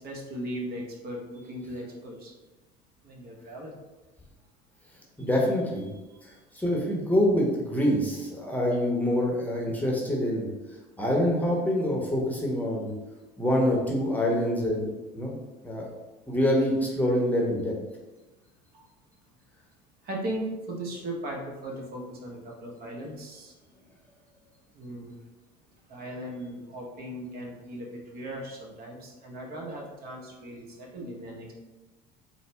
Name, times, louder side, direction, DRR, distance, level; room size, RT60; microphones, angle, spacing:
voice 1, 0.0-2.3 3.0-3.7 6.1-6.2 18.7-18.9 20.0-23.5 24.7-25.2 25.9-31.5, right 1 dB, 50° right, 0 dB, 0.9 m, -38 dB
voice 2, 5.2-5.9 6.2-6.3 6.5-10.5 11.0-12.9 13.4-15.4 15.6-15.9 16.3-17.7, equal, 10° left, -2 dB, 0.8 m, -26 dB
4.0 x 2.0 x 3.3 m, 1.1 s
supercardioid pair, 90°, 20 cm